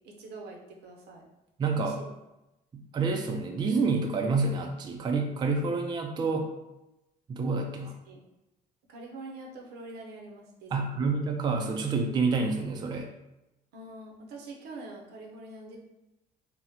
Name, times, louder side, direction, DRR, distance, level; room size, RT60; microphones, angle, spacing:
voice 1, 0.0-1.2 1.7-2.1 8.1-8.2 8.9-11.0 13.7-15.8, right 2 dB, 75° right, 0 dB, 0.7 m, -44 dB
voice 2, 1.6-1.9 2.7-6.5 7.3-8.0 10.7-13.1, right 4 dB, 25° right, 3 dB, 0.3 m, -28 dB
3.5 x 2.1 x 2.8 m, 0.94 s
cardioid pair, 110°, 17 cm